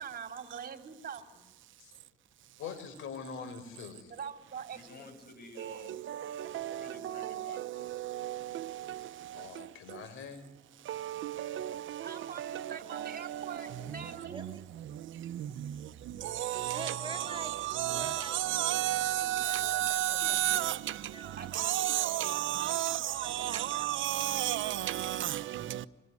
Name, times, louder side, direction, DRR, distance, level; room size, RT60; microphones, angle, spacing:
voice 1, 0.0-1.5 4.1-5.1 12.0-14.4 21.4-21.7, right 7 dB, 50° right, 3.5 m, -43 dB
voice 2, 2.6-4.1 9.3-10.5, left 6 dB, 85° left, 4.9 m, -43 dB
voice 3, 4.7-6.0 6.8-7.9 12.6-12.8, left 3 dB, 50° left, 7.5 m, -52 dB
voice 4, 6.3-6.7 7.2-7.3 10.9-11.7 12.4-12.5 13.0-13.1 16.4-20.7 21.6-23.0 23.4-25.2, right 13 dB, 75° right, 1.0 m, -31 dB
voice 5, 13.6-14.6 16.7-17.5 17.8-22.2 22.6-23.8, right 3 dB, 25° right, 3.9 m, -48 dB
26.5 x 22.0 x 9.7 m
cardioid pair, 90°, 20 cm